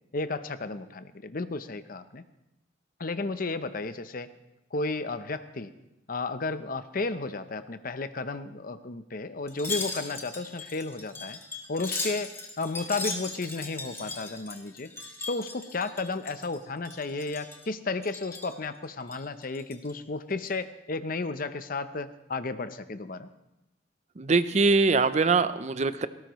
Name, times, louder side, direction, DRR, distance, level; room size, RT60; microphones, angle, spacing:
voice 1, 0.1-2.2 3.0-4.3 4.7-5.7 6.1-11.4 11.7-14.9 15.3-23.3, left 3 dB, 50° left, 11 dB, 0.7 m, -33 dB
Wind chime, 9.5-16.6 16.8-17.7 18.0-18.6 19.0-19.9 20.3-20.5, left 3 dB, 15° left, 1.6 m, -38 dB
voice 2, 24.2-26.1, right 4 dB, 40° right, 13 dB, 0.5 m, -23 dB
18.0 x 17.5 x 3.1 m, 0.93 s
head